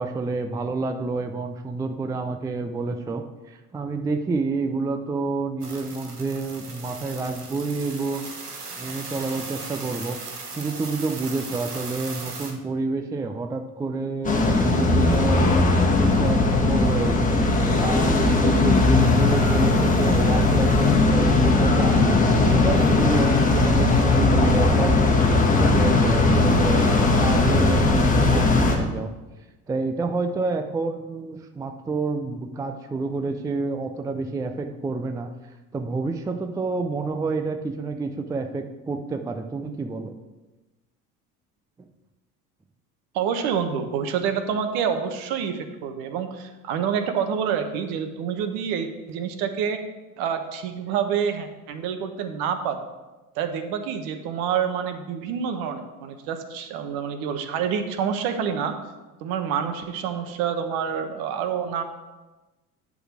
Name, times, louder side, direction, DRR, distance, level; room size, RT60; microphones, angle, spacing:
voice 1, 0.0-8.3 8.8-22.0 22.4-25.0 25.3-29.1 29.7-35.3 35.7-40.1 41.8-41.9, right 3 dB, 10° right, 7 dB, 0.4 m, -29 dB
sound 1, 5.6-12.5, right 3 dB, 85° right, 1.2 m, -37 dB
sound 2, 14.2-28.8, left 2 dB, 15° left, 1.6 m, -19 dB
voice 2, 43.1-49.8 50.2-52.9 53.4-58.8 59.2-61.8, right 7 dB, 55° right, 8 dB, 1.2 m, -27 dB
11.0 x 4.1 x 6.3 m, 1.1 s
figure-of-eight pair, 70°, 45 cm